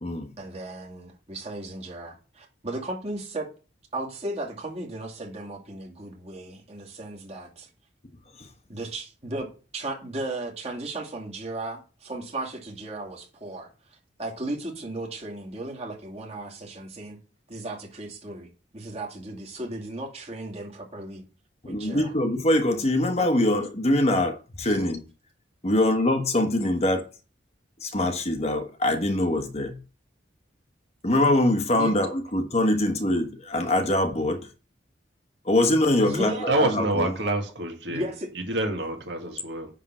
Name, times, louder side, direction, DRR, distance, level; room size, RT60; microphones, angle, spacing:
voice 1, 0.4-3.5 3.9-7.7 8.7-9.5 9.7-13.7 14.2-17.2 17.5-18.5 18.7-21.2 21.7-22.1 24.6-24.8 31.8-31.9 36.0-36.5 37.9-38.3, right 2 dB, 35° right, 2.3 m, -35 dB
voice 2, 21.6-25.0 25.6-27.1 27.8-29.8 31.0-34.5 35.4-37.1, left 1 dB, 35° left, 1.2 m, -23 dB
voice 3, 36.5-38.1 38.5-39.7, right 2 dB, 65° right, 2.0 m, -27 dB
9.9 x 3.8 x 6.1 m
head